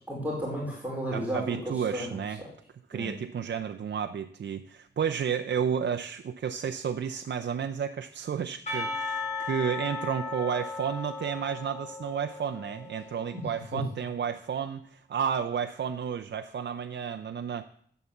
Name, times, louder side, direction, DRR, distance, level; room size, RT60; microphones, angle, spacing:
voice 1, 0.1-2.2 2.9-3.1 13.3-13.4 13.7-13.8, equal, 10° right, -4 dB, 4.3 m, -33 dB
voice 2, 1.1-2.4 2.9-17.6, right 7 dB, 70° right, 6 dB, 0.7 m, -32 dB
Percussion, 8.7-13.5, left 3 dB, 40° left, 5.0 m, -36 dB
15.0 x 8.2 x 7.2 m, 0.62 s
wide cardioid pair, 135°, 19 cm